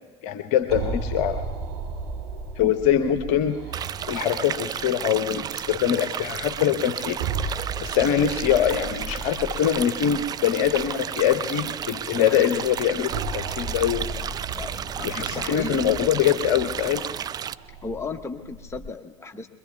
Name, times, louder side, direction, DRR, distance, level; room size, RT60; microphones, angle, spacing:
voice 1, 0.2-1.4 2.6-3.6 4.1-14.1 15.0-17.0, left 9 dB, 60° left, 9 dB, 0.9 m, -23 dB
sound 1, 0.6-18.8, right 3 dB, 70° right, 5.7 m, -36 dB
sound 2, 3.7-17.5, right 9 dB, 30° right, 0.4 m, -33 dB
voice 2, 12.2-12.5 14.6-16.1 17.8-19.5, left 4 dB, 20° left, 5 dB, 1.3 m, -35 dB
25.0 x 22.0 x 2.4 m, 1.3 s
figure-of-eight pair, 70°, 14 cm